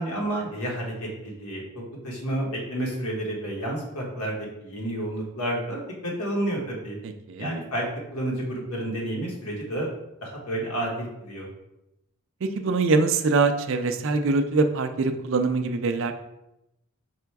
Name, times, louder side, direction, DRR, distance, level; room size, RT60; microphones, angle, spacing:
voice 1, 0.0-7.0 7.4-7.8 8.1-9.9 10.2-11.5, right 1 dB, 90° left, -2 dB, 1.3 m, -30 dB
voice 2, 7.0-7.5 12.4-16.1, right 3 dB, 60° right, 7 dB, 0.4 m, -23 dB
4.9 x 2.3 x 4.5 m, 0.88 s
head